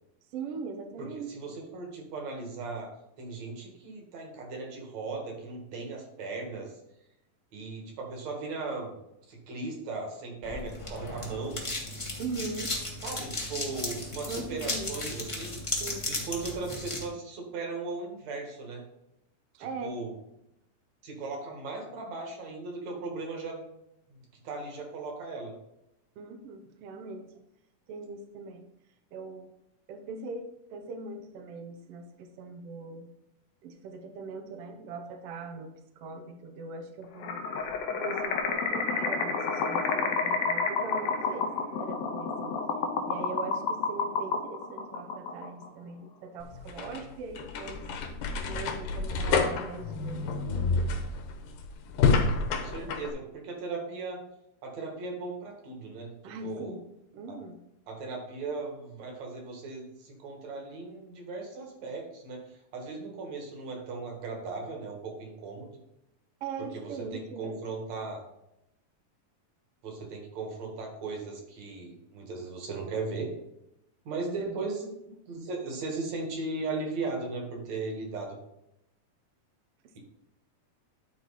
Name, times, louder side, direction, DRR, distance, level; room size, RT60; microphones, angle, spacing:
voice 1, 0.3-1.3 12.2-12.7 14.3-15.0 15.8-16.1 19.5-20.0 26.2-27.3 27.9-28.6 29.1-29.5 29.9-33.1 33.6-37.4 37.9-41.5 41.8-42.6 43.1-47.9 48.5-50.7 52.5-53.0 56.2-56.8 57.1-57.6 66.4-67.6 74.4-74.6, right 3 dB, 75° right, 4 dB, 1.4 m, -40 dB
voice 2, 1.0-2.9 3.2-6.8 7.5-8.9 9.3-11.7 13.0-15.6 16.1-18.8 19.6-20.1 21.0-23.6 24.1-25.5 52.5-54.2 54.6-56.8 57.3-57.4 57.9-65.7 66.6-68.2 69.8-73.3 74.0-74.9 75.3-78.4, right 3 dB, 60° right, 1 dB, 2.7 m, -37 dB
sound 1, 10.4-17.0, left 2 dB, 25° left, 0.6 m, -35 dB
sound 2, 37.2-45.7, left 4 dB, 70° left, 1.7 m, -30 dB
sound 3, 46.4-53.1, left 4 dB, 90° left, 2.6 m, -29 dB
10.5 x 4.5 x 4.1 m, 0.84 s
omnidirectional pair, 3.7 m